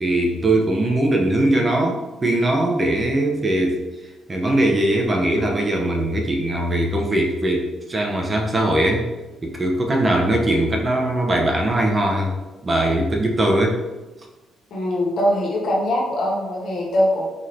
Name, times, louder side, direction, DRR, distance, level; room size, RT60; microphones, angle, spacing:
voice 1, 0.0-3.8 4.3-9.1 9.4-12.4 12.6-13.8, right 1 dB, 30° right, 0 dB, 0.7 m, -20 dB
voice 2, 14.7-17.2, left 1 dB, 65° left, -3 dB, 1.2 m, -22 dB
4.0 x 2.8 x 3.2 m, 1.1 s
cardioid pair, 90°, 0 cm